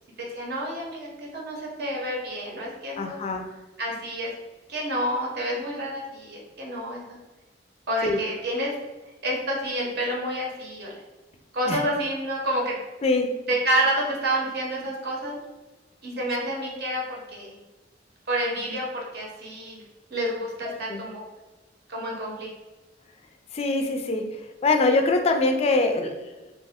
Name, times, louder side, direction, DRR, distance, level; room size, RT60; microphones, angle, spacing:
voice 1, 0.2-3.2 3.8-4.3 4.7-7.2 7.9-8.7 9.2-11.0 11.5-12.8 13.5-15.4 16.0-17.6 18.3-19.8 20.1-21.2 21.9-22.5, right 1 dB, 60° right, -2 dB, 0.8 m, -29 dB
voice 2, 3.0-3.5 8.0-8.2 11.7-11.8 13.0-13.3 20.6-21.0 23.5-24.3 24.6-26.3, left 3 dB, 35° left, 5 dB, 0.3 m, -23 dB
2.6 x 2.1 x 3.4 m, 1.2 s
head